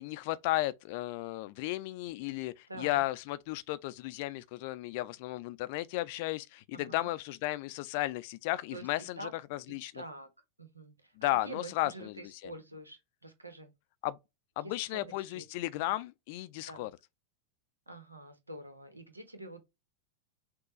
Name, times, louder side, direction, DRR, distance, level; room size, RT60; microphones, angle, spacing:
voice 1, 0.0-10.0 11.2-12.5 14.0-14.2 14.6-16.9, left 16 dB, 50° left, 0.4 m, -34 dB
voice 2, 2.7-3.0 6.7-7.1 8.7-9.3 9.9-10.3 10.6-11.1 11.4-13.7 14.6-14.7 15.0-15.9 16.7-16.9 17.9-19.6, right 2 dB, 85° right, 1.0 m, -47 dB
6.3 x 2.2 x 3.0 m
figure-of-eight pair, 90°, 0 cm